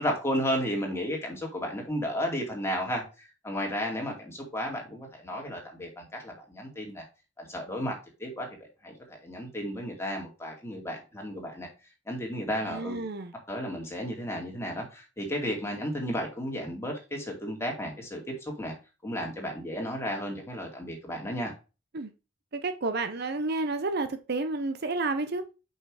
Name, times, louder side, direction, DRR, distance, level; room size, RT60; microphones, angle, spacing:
voice 1, 0.0-7.0 7.4-8.5 8.8-11.7 12.1-13.0 13.5-18.7 19.0-21.5, equal, 15° left, 2.4 m, -33 dB
voice 2, 12.6-13.3 21.9-22.1 22.5-25.4, right 3 dB, 55° right, 0.7 m, -30 dB
5.8 x 5.7 x 4.8 m
head